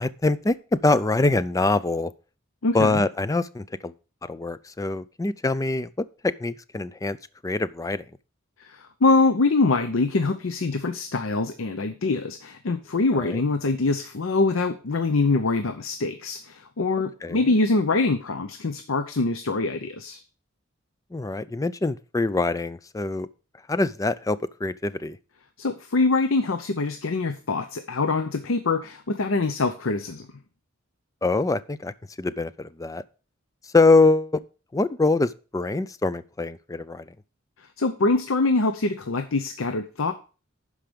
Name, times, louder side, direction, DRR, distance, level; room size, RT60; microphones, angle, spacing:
voice 1, 0.0-2.1 2.7-3.9 4.2-5.9 6.2-7.2 7.4-8.1 13.1-13.4 17.2-17.4 21.1-23.3 23.7-25.2 31.2-33.0 33.7-34.4 34.7-37.0, left 3 dB, 15° left, 16 dB, 0.4 m, -24 dB
voice 2, 2.6-3.0 8.6-20.2 25.6-30.3 37.8-40.1, left 3 dB, 80° left, 9 dB, 0.7 m, -24 dB
11.5 x 4.9 x 5.1 m, 0.35 s
head